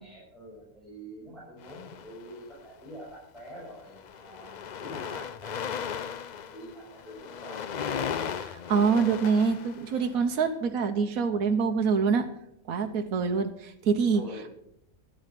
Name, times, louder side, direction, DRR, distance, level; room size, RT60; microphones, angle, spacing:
voice 1, 0.0-5.9 6.4-7.6 14.1-14.5, equal, ahead, -8 dB, 5.7 m, -46 dB
sound 1, 1.6-2.6 3.4-3.6 3.9-10.3, left 7 dB, 75° left, 0.4 m, -36 dB
voice 2, 8.4-12.3 12.7-14.2, right 5 dB, 75° right, 5 dB, 1.3 m, -25 dB
13.0 x 11.0 x 5.9 m, 0.76 s
omnidirectional pair, 1.5 m